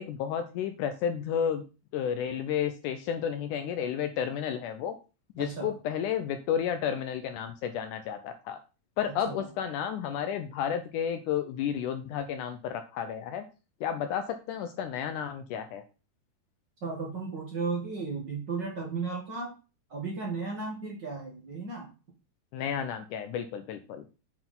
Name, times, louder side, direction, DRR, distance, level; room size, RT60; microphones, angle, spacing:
voice 1, 0.0-1.6 1.9-5.0 5.4-8.6 9.0-13.4 13.8-15.8 22.5-24.0, left 8 dB, 75° left, 8 dB, 2.0 m, -32 dB
voice 2, 5.4-5.7 9.0-9.5 16.8-19.5 19.9-21.9, right 4 dB, 40° right, -1 dB, 1.8 m, -35 dB
7.7 x 4.7 x 5.5 m, 0.32 s
omnidirectional pair, 4.1 m